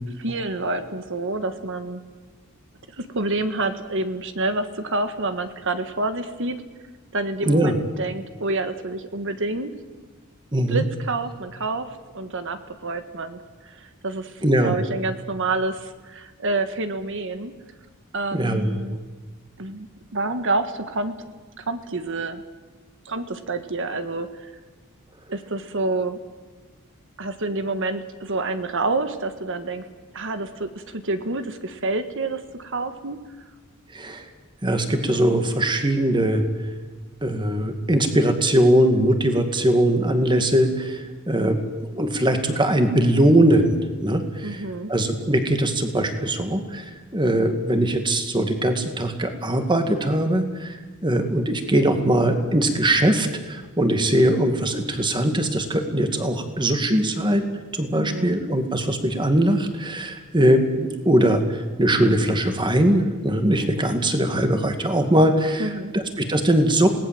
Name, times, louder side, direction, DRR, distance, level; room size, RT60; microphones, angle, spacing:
voice 1, 0.2-2.0 3.0-6.6 7.1-9.7 10.7-11.9 12.1-17.5 18.1-19.0 19.6-19.9 20.1-21.1 21.6-22.4 23.0-24.5 25.3-26.2 27.2-29.8 30.1-33.2 44.4-44.9 57.9-58.4 65.6-65.9, right 2 dB, 60° right, 9 dB, 1.5 m, -28 dB
voice 2, 7.4-7.8 10.5-10.8 14.4-14.8 18.3-18.7 33.9-34.2 34.6-36.4 37.2-41.6 42.0-44.6 44.9-46.8 47.1-57.4 57.7-66.9, right 1 dB, 20° right, 6 dB, 2.3 m, -21 dB
27.5 x 18.5 x 7.7 m, 1.3 s
head